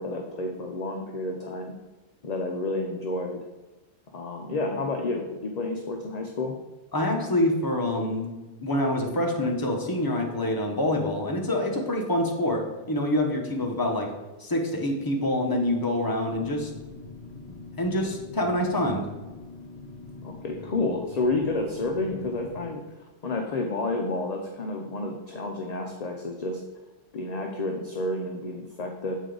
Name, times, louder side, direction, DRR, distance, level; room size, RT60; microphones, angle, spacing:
voice 1, 0.0-1.7 2.2-3.4 4.1-6.5 20.2-22.8 23.2-26.6 27.1-29.2, left 2 dB, 45° left, 2 dB, 0.6 m, -30 dB
voice 2, 6.9-8.3 8.6-14.1 14.4-16.7 17.5-19.1, left 1 dB, 20° left, 1 dB, 0.9 m, -26 dB
sound 1, 16.3-22.7, left 3 dB, 65° left, 1.0 m, -44 dB
7.4 x 5.0 x 3.8 m, 1.1 s
omnidirectional pair, 1.2 m